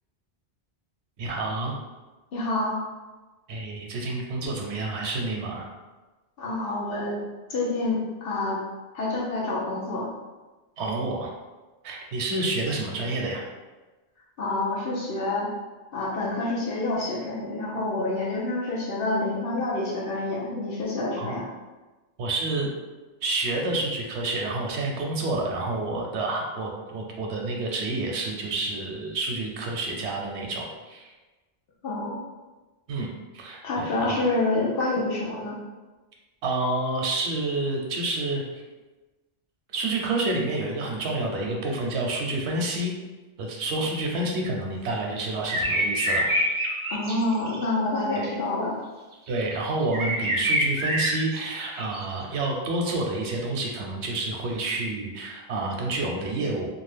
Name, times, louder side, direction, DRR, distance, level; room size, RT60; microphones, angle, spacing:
voice 1, 1.2-1.8 3.5-5.7 10.8-11.3 11.8-13.4 21.2-21.3 22.2-22.7 23.2-31.1 32.9-33.1 33.3-34.2 36.4-38.6 39.7-42.9 43.4-46.5 48.2-48.3 49.3-56.7, right 2 dB, 85° right, 0 dB, 0.9 m, -29 dB
voice 2, 2.3-2.8 6.4-7.2 7.5-8.6 8.9-10.1 14.4-15.5 15.9-21.5 31.8-32.2 33.6-35.6 46.9-48.7, left 2 dB, 65° left, -4 dB, 0.8 m, -27 dB
sound 1, 45.5-47.6 49.3-52.2, equal, 50° right, 0.3 m, -26 dB
2.5 x 2.4 x 3.2 m, 1.2 s
omnidirectional pair, 1.1 m